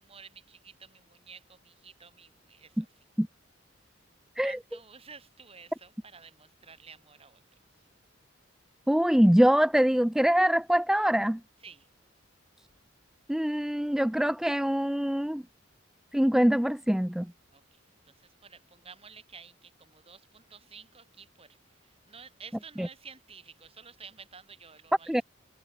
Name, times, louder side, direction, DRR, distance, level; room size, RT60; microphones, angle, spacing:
voice 1, 0.0-2.9 4.4-7.4 11.6-11.9 17.5-17.8 18.1-21.5 21.8-25.2, right 5 dB, 30° right, 7.9 m, -51 dB
voice 2, 8.9-11.4 13.3-15.4 16.1-17.3 22.8-22.9 25.1-25.2, equal, ahead, 0.3 m, -24 dB
head